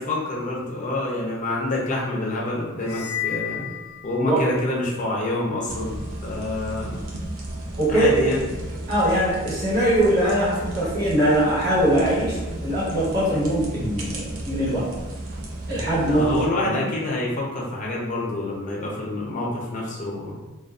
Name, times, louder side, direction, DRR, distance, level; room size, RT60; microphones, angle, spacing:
voice 1, 0.0-3.7 4.0-7.0 7.9-8.4 16.1-20.4, left 2 dB, 35° left, -3 dB, 0.5 m, -27 dB
sound 1, 2.8-4.7, left 12 dB, 90° left, 0.4 m, -32 dB
sound 2, 5.7-16.5, right 1 dB, 90° right, 0.5 m, -34 dB
voice 2, 7.8-8.1 8.9-14.9 15.7-16.2 16.6-16.9, right 1 dB, 50° right, -10 dB, 1.0 m, -22 dB
2.5 x 2.3 x 2.4 m, 1.2 s
head